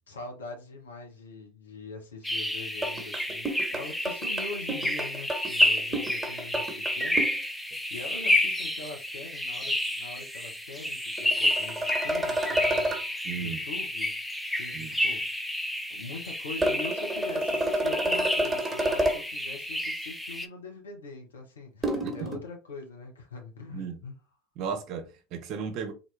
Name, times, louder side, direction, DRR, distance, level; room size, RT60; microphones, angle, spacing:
voice 1, 0.1-15.3 15.9-24.2, left 3 dB, 80° left, 1.0 m, -43 dB
sound 1, 2.2-20.5, left 1 dB, 5° left, 0.5 m, -30 dB
sound 2, 2.8-7.4 11.2-13.0 16.6-19.2 21.8-22.4, right 1 dB, 20° right, 1.2 m, -29 dB
voice 2, 13.2-13.6 14.7-14.9 22.0-22.1 23.7-24.0 24.6-25.9, right 6 dB, 55° right, 0.8 m, -35 dB
3.8 x 2.2 x 3.3 m
hypercardioid pair, 75°, 0 cm